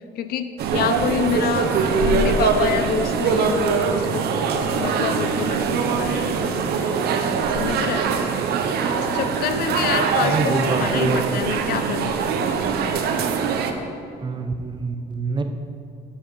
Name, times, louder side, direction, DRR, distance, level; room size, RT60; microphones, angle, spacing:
voice 1, 0.2-1.7 2.0-4.3 4.7-7.1 7.6-8.1 8.9-12.2, left 8 dB, 65° left, 10 dB, 0.5 m, -27 dB
sound 1, 0.6-13.7, right 5 dB, 70° right, 0.8 m, -22 dB
voice 2, 10.2-11.4 14.2-15.4, right 3 dB, 25° right, 6 dB, 0.7 m, -25 dB
7.4 x 6.7 x 5.4 m, 2.4 s
cardioid pair, 110°, 17 cm